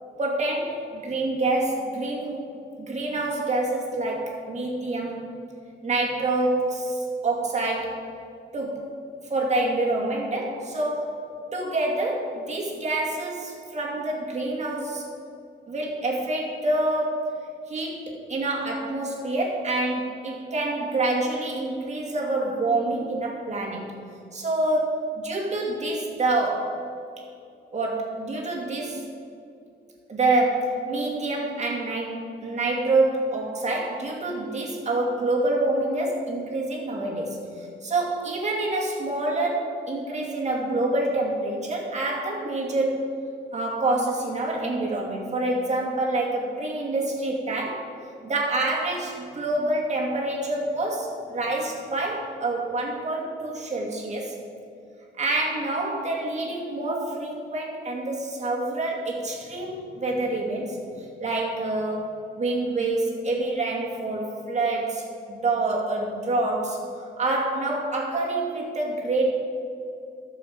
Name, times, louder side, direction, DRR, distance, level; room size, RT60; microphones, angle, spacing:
voice 1, 0.2-2.4 2.8-5.2 5.8-8.0 8.5-8.9 9.3-11.2 11.5-15.1 15.7-23.9 24.3-26.8 27.7-29.0 30.1-43.2 43.5-47.9 48.2-54.3 55.2-60.8 61.2-66.8 67.2-69.3, right 2 dB, 35° right, -2 dB, 2.4 m, -27 dB
10.5 x 6.9 x 7.2 m, 2.5 s
cardioid pair, 90°, 20 cm